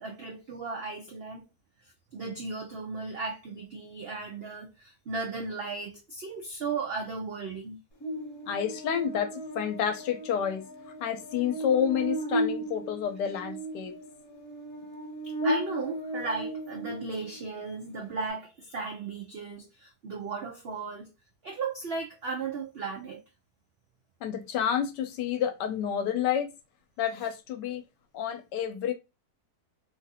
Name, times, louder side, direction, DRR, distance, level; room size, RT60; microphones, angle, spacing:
voice 1, 0.0-1.4 1.8-7.8 15.2-21.1 21.4-23.2, right 4 dB, 75° right, 0.5 m, -36 dB
Buzz, 8.0-17.5, right 1 dB, 55° left, 1.1 m, -35 dB
voice 2, 8.5-10.6 11.0-13.9 24.2-26.5 27.0-27.8 28.1-28.9, left 9 dB, 80° left, 1.2 m, -29 dB
3.0 x 2.5 x 2.7 m
omnidirectional pair, 1.8 m